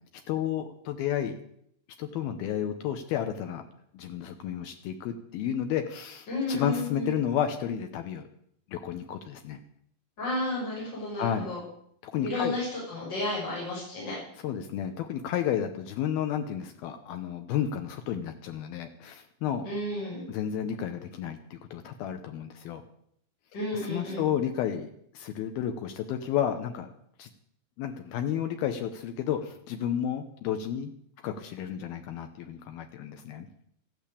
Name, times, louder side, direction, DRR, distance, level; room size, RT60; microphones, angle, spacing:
voice 1, 0.3-1.4 2.0-3.6 3.9-8.2 8.7-9.6 11.2-11.5 12.0-12.6 14.4-19.7 20.3-22.8 23.9-24.9 25.1-26.9 27.2-27.3 27.8-30.9 31.2-33.5, left 9 dB, 85° left, 6 dB, 2.1 m, -32 dB
voice 2, 6.3-7.1 10.2-11.6 12.2-14.1 19.6-20.3 23.5-24.3, left 2 dB, 20° left, -6 dB, 7.1 m, -32 dB
14.0 x 9.1 x 8.4 m, 0.69 s
omnidirectional pair, 5.7 m